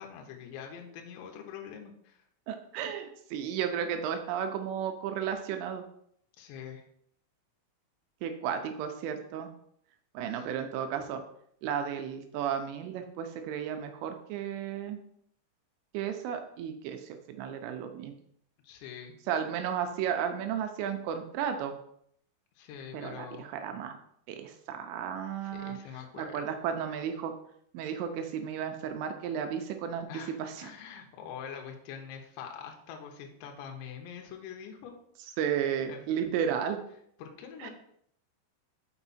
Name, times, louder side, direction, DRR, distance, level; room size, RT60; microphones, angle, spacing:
voice 1, 0.0-2.2 6.4-6.8 10.3-10.5 18.6-19.2 22.6-23.4 25.4-26.6 30.1-34.9 35.9-36.3 37.2-37.7, left 7 dB, 75° left, 2 dB, 3.0 m, -44 dB
voice 2, 2.5-5.8 8.2-9.5 10.1-11.2 11.6-15.0 15.9-18.2 19.3-21.8 22.9-24.0 24.3-25.8 26.2-27.3 27.7-30.1 30.4-30.7 35.4-36.8 37.6-37.7, right 8 dB, 85° right, 6 dB, 3.1 m, -33 dB
6.2 x 5.9 x 4.2 m, 0.68 s
omnidirectional pair, 5.8 m